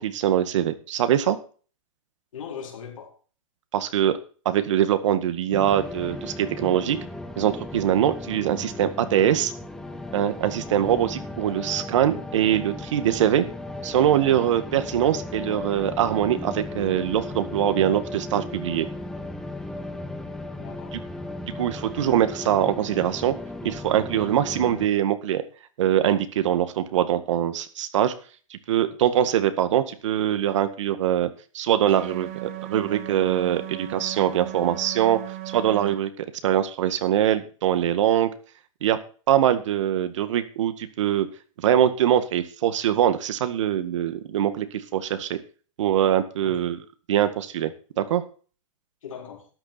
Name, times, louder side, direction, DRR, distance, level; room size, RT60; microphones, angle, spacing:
voice 1, 0.0-1.4 3.7-4.2 4.5-7.0 7.4-9.5 10.1-13.5 13.8-18.9 20.9-21.0 21.4-23.4 23.6-25.4 25.8-28.1 28.5-31.3 31.5-35.2 35.5-38.3 38.8-39.0 39.3-41.3 41.6-44.7 44.9-45.4 45.8-46.8 47.1-48.2, right 10 dB, 65° right, 1.9 m, -23 dB
voice 2, 2.3-3.1 11.7-11.8 20.6-21.0 46.4-46.7 49.0-49.5, left 7 dB, 75° left, 4.3 m, -39 dB
sound 1, 5.5-24.9, left 2 dB, 5° left, 1.4 m, -36 dB
sound 2, 31.9-36.0, right 14 dB, 35° right, 1.4 m, -36 dB
13.0 x 10.0 x 4.3 m
hypercardioid pair, 145°, 17 cm